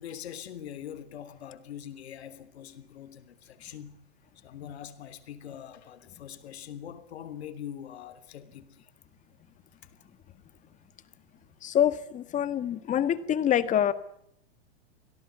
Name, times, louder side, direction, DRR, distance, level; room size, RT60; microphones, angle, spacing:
voice 1, 0.0-4.0 4.4-8.9 9.8-9.9, left 9 dB, 80° left, 3.3 m, -43 dB
voice 2, 11.6-13.9, left 10 dB, 25° left, 1.7 m, -25 dB
27.0 x 18.0 x 9.4 m
supercardioid pair, 140°, 32 cm